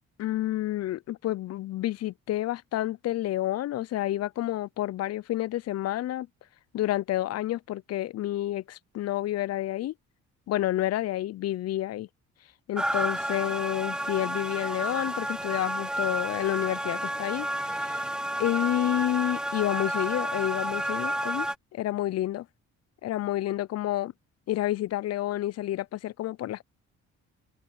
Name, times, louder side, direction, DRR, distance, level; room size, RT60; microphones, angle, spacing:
voice 1, 0.2-6.3 6.7-9.9 10.5-12.1 12.7-18.1 18.4-22.5 23.0-24.1 24.5-26.6, left 14 dB, 55° left, 0.4 m, -29 dB
sound 1, 12.8-21.5, right 1 dB, 5° right, 0.7 m, -31 dB
cardioid pair, 90°, 30 cm